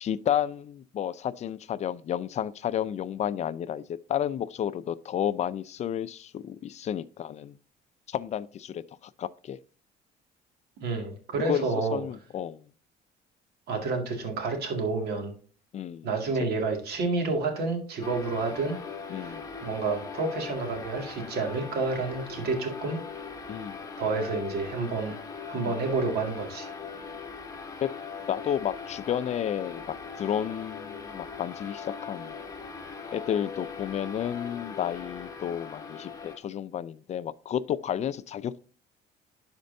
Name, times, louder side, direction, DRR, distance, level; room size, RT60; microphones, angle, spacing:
voice 1, 0.0-7.6 8.1-9.6 11.4-11.6 11.9-12.7 15.7-16.1 19.1-19.5 23.5-23.8 25.6-25.8 27.8-27.9 28.3-32.3 33.1-38.6, left 9 dB, 40° left, 0.4 m, -31 dB
voice 2, 10.8-12.0 13.7-15.3 16.0-18.8 19.1-23.0 24.0-25.2 25.5-26.7, right 3 dB, 70° right, 2.0 m, -29 dB
sound 1, 18.0-36.4, left 5 dB, 20° left, 1.2 m, -40 dB
11.5 x 4.4 x 2.6 m
cardioid pair, 110°, 17 cm